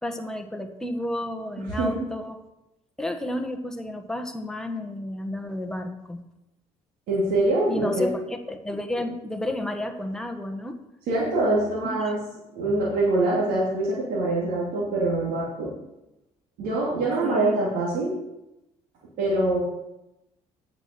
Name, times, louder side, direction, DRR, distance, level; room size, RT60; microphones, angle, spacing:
voice 1, 0.0-2.4 3.0-6.2 7.7-10.8 11.8-12.1 17.2-17.6, left 1 dB, 5° left, 5 dB, 1.3 m, -31 dB
voice 2, 1.7-2.0 7.1-8.1 11.1-12.2 12.5-15.7 16.6-18.2 19.2-19.6, right 2 dB, 85° right, -6 dB, 2.7 m, -24 dB
8.9 x 5.9 x 6.7 m, 0.91 s
supercardioid pair, 80°, 15 cm